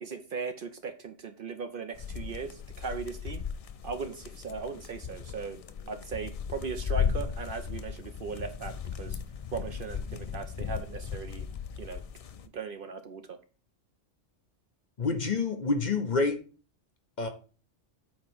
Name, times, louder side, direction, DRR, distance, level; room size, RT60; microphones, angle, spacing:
voice 1, 0.0-3.4 3.8-5.6 5.9-9.2 9.5-11.5 11.8-12.0 12.5-13.4, right 5 dB, 55° right, 9 dB, 0.7 m, -38 dB
sound 1, 1.9-12.5, left 7 dB, 60° left, 0.3 m, -36 dB
voice 2, 15.0-16.4 17.2-17.3, left 4 dB, 45° left, 7 dB, 0.8 m, -27 dB
8.5 x 2.9 x 6.0 m, 0.37 s
omnidirectional pair, 1.2 m